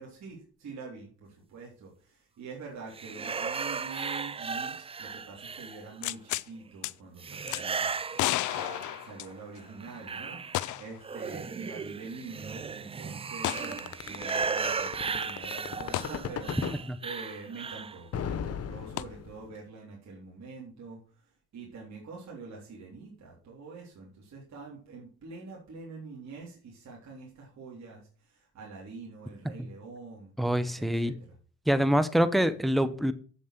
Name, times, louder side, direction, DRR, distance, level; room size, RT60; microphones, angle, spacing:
voice 1, 0.0-10.4 10.8-30.3 30.8-31.4, right 4 dB, 65° right, 3.6 m, -45 dB
sound 1, 2.9-6.1 7.2-9.2 9.6-18.0, right 5 dB, 20° right, 0.4 m, -36 dB
sound 2, 6.0-6.5 6.8-6.9 7.5-7.6 8.2-9.7 10.5-11.0 11.3-11.4 13.4-13.7 15.9-16.1 19.0-19.1, left 17 dB, 80° left, 0.5 m, -32 dB
sound 3, 13.6-16.8 18.1-19.5, left 7 dB, 55° left, 1.1 m, -35 dB
voice 2, 30.4-31.1 31.7-33.1, equal, ahead, 0.9 m, -25 dB
7.8 x 7.5 x 5.9 m
cardioid pair, 90°, 30 cm